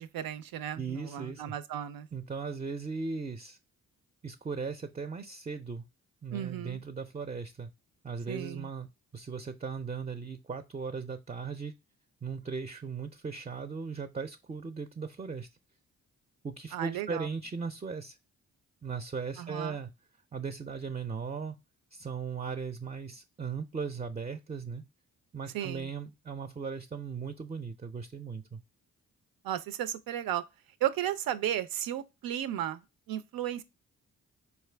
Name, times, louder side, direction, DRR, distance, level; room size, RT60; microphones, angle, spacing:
voice 1, 0.0-2.1 6.3-6.8 8.3-8.7 16.7-17.3 19.4-19.8 25.5-25.9 29.4-30.4 30.8-32.8 33.1-33.6, right 11 dB, 80° right, 0.5 m, -34 dB
voice 2, 0.8-1.5 2.1-3.6 4.2-5.8 6.2-7.7 8.0-8.9 9.1-11.7 12.2-15.5 16.4-18.2 18.8-19.9 20.3-21.6 21.9-24.8 25.3-28.6, right 5 dB, 20° right, 0.4 m, -38 dB
4.3 x 2.5 x 3.2 m
cardioid pair, 55°, 34 cm